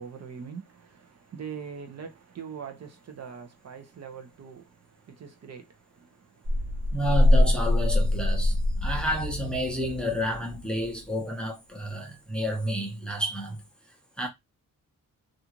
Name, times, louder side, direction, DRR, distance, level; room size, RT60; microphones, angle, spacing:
voice 1, 0.0-7.0, right 6 dB, 50° right, 0.6 m, -43 dB
sound 1, 6.4-10.9, left 1 dB, 85° right, 0.9 m, -24 dB
voice 2, 6.9-13.6 14.2-14.3, equal, 5° left, 0.6 m, -30 dB
2.5 x 2.4 x 2.9 m
wide cardioid pair, 120°, 34 cm